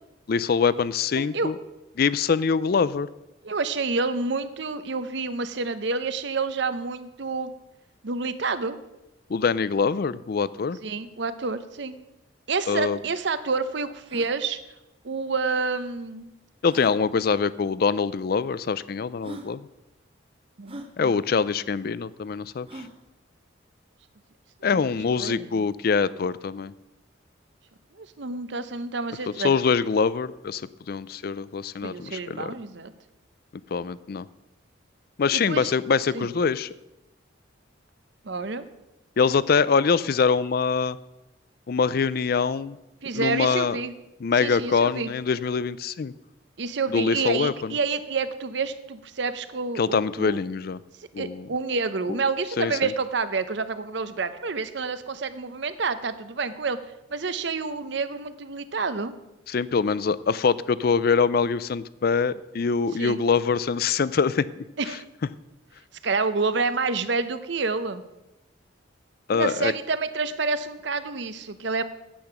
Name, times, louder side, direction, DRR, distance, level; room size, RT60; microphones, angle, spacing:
voice 1, 0.3-1.5 2.0-3.1 9.3-10.8 12.7-13.0 16.6-19.7 21.0-22.8 24.6-26.7 29.4-30.6 30.9-32.5 33.7-34.3 35.2-36.7 39.2-41.0 41.7-42.8 43.1-43.8 44.2-46.1 46.9-47.7 49.8-50.8 51.1-51.5 52.1-52.2 52.6-52.9 59.5-64.5 69.3-69.7, left 5 dB, 50° left, 18 dB, 0.4 m, -24 dB
voice 2, 1.1-1.5 3.4-7.5 8.0-8.8 10.8-12.0 12.5-14.6 15.0-16.3 17.1-17.4 20.6-21.1 24.6-24.8 25.2-25.6 28.0-29.6 31.8-32.9 35.3-35.7 36.1-36.3 38.2-38.7 43.0-43.9 44.4-45.1 46.6-50.4 51.2-56.8 57.1-59.1 63.0-63.2 64.8-65.0 66.0-68.0 69.3-71.8, right 4 dB, 60° right, 12 dB, 0.7 m, -28 dB
sound 1, 12.5-12.6 12.8-12.9 13.4-13.5 14.0-14.3 15.7-15.8 16.7-17.0 18.0-18.1 18.8-18.9 19.2-19.5 20.7-20.9 22.7-23.0, right 1 dB, 30° right, 0.9 m, -41 dB
10.0 x 8.6 x 5.9 m, 0.93 s
head